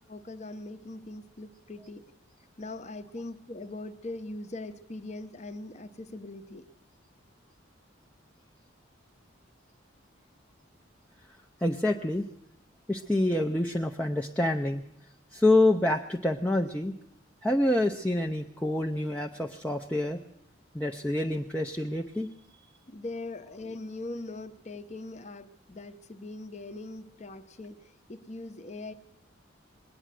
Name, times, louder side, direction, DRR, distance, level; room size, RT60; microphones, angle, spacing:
voice 1, 0.1-2.1 2.6-6.6 22.9-28.9, left 2 dB, 35° left, 10 dB, 0.8 m, -41 dB
voice 2, 11.6-12.3 12.9-14.8 15.3-17.0 17.4-20.2 20.7-22.3, left 1 dB, 5° left, 2 dB, 0.5 m, -27 dB
21.0 x 9.2 x 7.5 m, 0.76 s
head